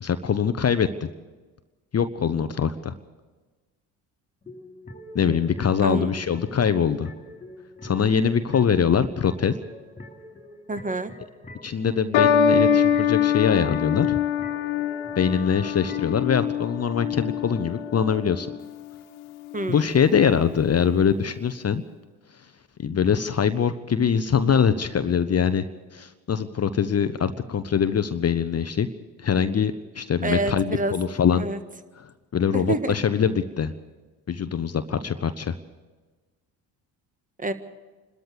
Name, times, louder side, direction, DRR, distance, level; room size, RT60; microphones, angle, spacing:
voice 1, 0.0-1.1 1.9-2.9 5.1-7.1 7.8-9.5 11.6-14.2 15.2-18.5 19.7-21.8 22.8-25.6 25.9-28.9 29.2-31.4 32.0-33.7 34.3-35.5, left 7 dB, 30° left, 11 dB, 0.9 m, -23 dB
sound 1, 4.4-16.2, left 1 dB, 15° left, 3.5 m, -44 dB
voice 2, 5.8-6.1 10.7-11.1 19.5-19.9 30.2-30.9 31.3-31.6 32.5-32.9 37.4-37.5, right 2 dB, 15° right, 10 dB, 1.6 m, -27 dB
sound 2, 12.1-18.7 19.5-19.9, left 8 dB, 65° left, 1.6 m, -24 dB
28.5 x 13.5 x 6.8 m, 1.3 s
hypercardioid pair, 55°, 50 cm